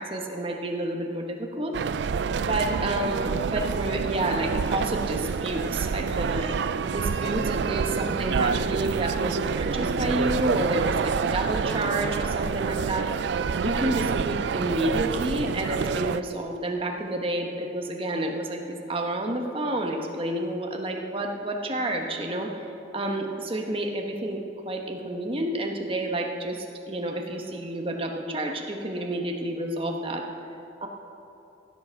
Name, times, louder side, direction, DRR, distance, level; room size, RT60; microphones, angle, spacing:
voice 1, 0.0-1.7 2.5-6.6 6.9-13.1 13.6-22.5 22.9-30.2 30.8-30.9, right 1 dB, 30° right, 2 dB, 1.1 m, -29 dB
sound 1, 1.7-16.2, right 6 dB, 70° right, 0.3 m, -27 dB
15.5 x 7.7 x 6.4 m, 2.9 s
head